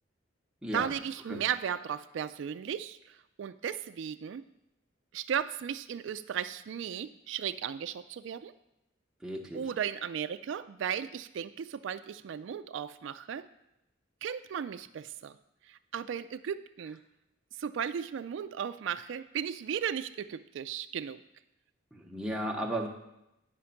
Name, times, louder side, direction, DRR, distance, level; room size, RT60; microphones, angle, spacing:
voice 1, 0.7-4.4 5.1-8.5 9.5-13.5 14.2-15.4 15.6-17.0 17.6-21.2, right 8 dB, 70° right, 11 dB, 0.3 m, -36 dB
voice 2, 9.2-9.6 21.9-22.9, right 1 dB, 5° right, 0 dB, 0.8 m, -34 dB
9.8 x 5.1 x 5.7 m, 0.88 s
head